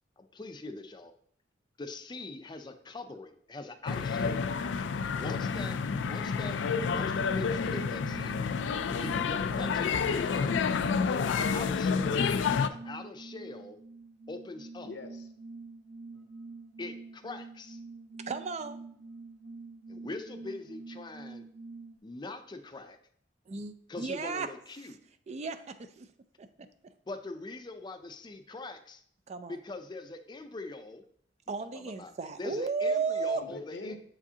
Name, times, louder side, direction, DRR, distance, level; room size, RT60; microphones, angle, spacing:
voice 1, 0.2-1.1 1.8-4.4 5.1-6.6 6.9-8.4 8.9-10.6 11.5-12.3 12.7-13.8 14.3-14.9 16.8-17.8 19.9-21.4 22.0-23.0 23.9-25.0 27.1-29.0 29.5-31.0 31.7-32.1 32.4-34.0, left 2 dB, 25° left, 7 dB, 0.5 m, -42 dB
sound 1, 3.9-12.7, left 5 dB, 90° left, 0.4 m, -29 dB
sound 2, 5.5-22.0, right 3 dB, 65° right, 0.7 m, -47 dB
voice 2, 10.6-11.7 14.8-15.3 33.3-34.0, left 2 dB, 70° left, 7 dB, 0.8 m, -43 dB
voice 3, 18.2-18.8 23.5-24.5 25.3-26.1 26.4-26.5 29.3-29.6 31.5-33.4, right 4 dB, 40° right, 10 dB, 0.4 m, -34 dB
7.7 x 4.9 x 2.8 m, 0.62 s
head